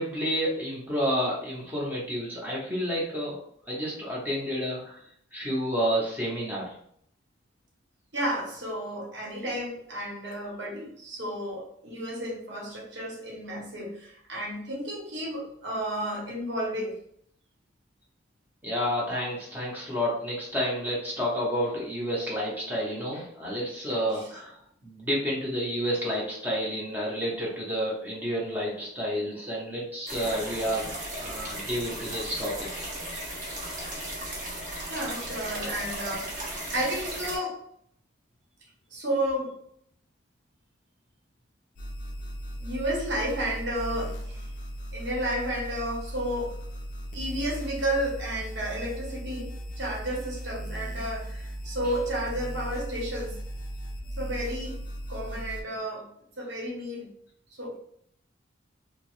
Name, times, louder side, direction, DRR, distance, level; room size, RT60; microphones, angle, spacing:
voice 1, 0.0-3.4 3.7-5.0 5.3-6.7 18.6-24.5 24.8-30.9 31.2-32.9, equal, 10° right, -5 dB, 0.7 m, -30 dB
voice 2, 8.1-17.0 24.1-24.3 32.3-32.5 34.9-37.6 38.9-39.6 42.6-44.5 44.9-46.6 47.1-53.4 54.2-54.8 55.1-56.1 56.4-57.1 57.5-57.8, right 1 dB, 65° right, -3 dB, 0.9 m, -32 dB
sound 1, 30.1-37.4, right 1 dB, 40° right, 0.7 m, -36 dB
sound 2, 41.8-55.6, equal, 45° left, 0.4 m, -37 dB
3.0 x 2.0 x 3.0 m, 0.67 s
head